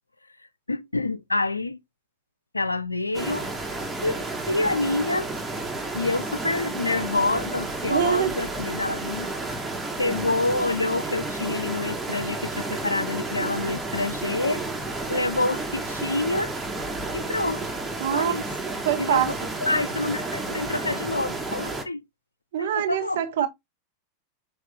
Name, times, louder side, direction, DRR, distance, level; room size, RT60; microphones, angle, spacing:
voice 1, 0.7-1.8 2.5-3.5 4.0-5.3 5.9-9.3 10.0-14.6 15.1-16.5 17.1-17.6 18.1-18.4 19.0-19.3 19.6-22.0 22.6-23.2, left 2 dB, 90° left, 0.4 m, -27 dB
sound 1, 3.1-21.8, right 2 dB, 10° right, 1.3 m, -31 dB
voice 2, 7.9-8.4 18.0-18.4 18.7-19.3 22.5-23.5, right 11 dB, 60° right, 0.8 m, -24 dB
6.4 x 2.4 x 3.5 m
figure-of-eight pair, 90°, 0 cm